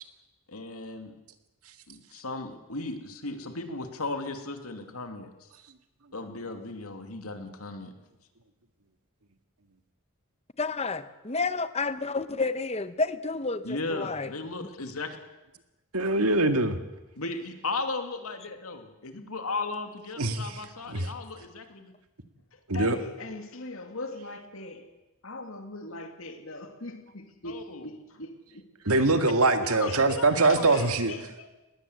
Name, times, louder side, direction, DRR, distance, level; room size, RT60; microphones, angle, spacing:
voice 1, 0.5-1.1 1.9-5.5 6.1-7.9 13.6-15.2 17.2-21.9 27.4-27.9 29.7-29.9 30.2-30.3 30.5-31.0, left 3 dB, 80° left, 2.7 m, -36 dB
voice 2, 10.6-14.3 14.6-14.7, left 3 dB, 30° left, 1.0 m, -30 dB
voice 3, 15.9-16.8 20.2-20.5 20.9-21.1 22.7-23.0 28.9-31.1, right 2 dB, 80° right, 1.9 m, -23 dB
voice 4, 22.5-24.9 25.2-29.1 29.6-31.5, left 2 dB, 65° left, 2.5 m, -40 dB
20.5 x 18.5 x 8.0 m
head